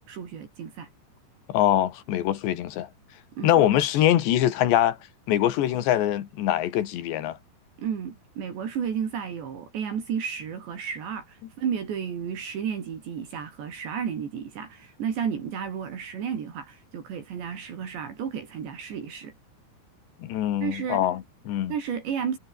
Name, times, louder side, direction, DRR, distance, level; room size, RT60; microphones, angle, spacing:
voice 1, 0.1-0.9 3.4-3.7 7.8-19.3 20.6-21.1 21.7-22.4, right 7 dB, 70° right, 5.8 m, -32 dB
voice 2, 1.5-2.9 3.4-5.0 5.3-7.4 20.2-21.7, left 12 dB, 70° left, 4.0 m, -23 dB
omnidirectional pair, 5.4 m